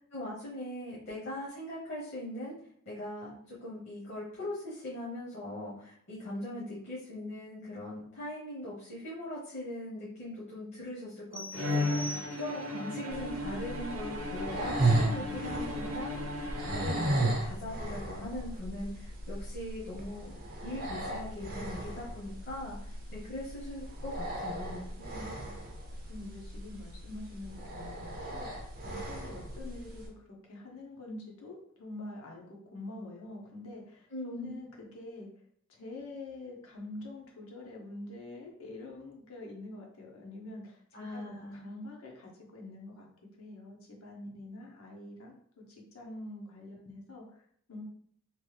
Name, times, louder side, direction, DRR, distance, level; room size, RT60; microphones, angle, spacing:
voice 1, 0.1-2.5 2.9-12.0 12.4-20.4 20.6-24.9 34.1-34.6 40.9-41.7, left 1 dB, 55° left, -6 dB, 0.9 m, -40 dB
sound 1, 11.3-12.8, equal, 10° right, 0.3 m, -43 dB
Bowed string instrument, 11.5-17.6, left 2 dB, 85° right, 0.6 m, -36 dB
sound 2, 13.1-30.1, right 2 dB, 45° right, 0.7 m, -36 dB
voice 2, 14.9-15.5 25.0-25.6 26.1-35.3 35.7-40.8 41.1-43.1 43.4-47.8, left 2 dB, 80° left, -1 dB, 0.8 m, -46 dB
3.0 x 2.3 x 3.1 m, 0.64 s
head